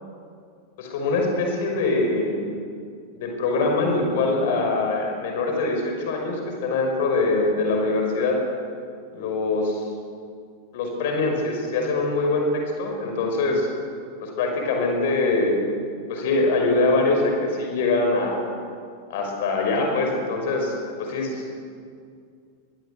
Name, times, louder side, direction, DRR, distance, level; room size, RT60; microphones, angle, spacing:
voice 1, 0.8-2.5 3.2-8.4 9.1-9.9 10.7-13.7 14.2-15.7 16.1-18.4 19.1-21.5, left 3 dB, 55° left, 2 dB, 5.6 m, -23 dB
23.0 x 22.5 x 8.4 m, 2.2 s
figure-of-eight pair, 90°, 0 cm